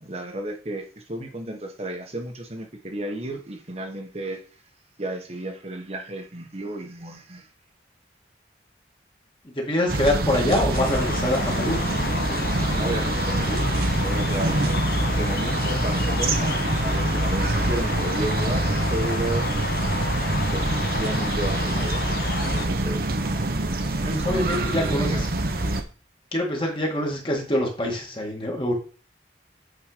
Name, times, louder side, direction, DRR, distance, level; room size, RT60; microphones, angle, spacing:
voice 1, 0.0-4.4 5.0-7.5 12.6-13.7 13.9-14.6 15.1-19.5 20.4-23.1 24.0-25.2, right 1 dB, 35° right, 3 dB, 1.2 m, -33 dB
voice 2, 9.6-11.8 24.2-25.2 26.3-28.7, left 1 dB, 25° left, 0 dB, 2.0 m, -25 dB
sound 1, 9.9-25.8, right 2 dB, 55° right, 1.1 m, -25 dB
sound 2, 10.7-22.7, left 4 dB, 55° left, 0.7 m, -32 dB
8.8 x 4.5 x 5.1 m, 0.39 s
head